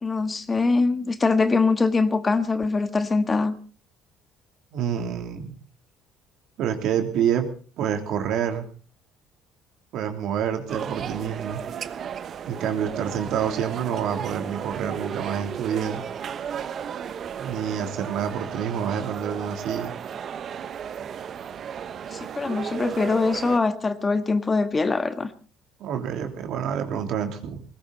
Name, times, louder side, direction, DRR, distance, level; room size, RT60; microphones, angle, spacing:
voice 1, 0.0-3.5 22.1-25.3, left 3 dB, 25° left, 11 dB, 1.5 m, -23 dB
voice 2, 4.7-5.5 6.6-7.5 7.8-8.7 9.9-11.6 12.5-16.0 17.3-19.9 25.8-27.6, right 8 dB, 70° right, 6 dB, 3.2 m, -27 dB
sound 1, 10.7-23.6, right 8 dB, 50° right, 1.1 m, -34 dB
20.0 x 16.5 x 4.1 m, 0.39 s
supercardioid pair, 90°, 0 cm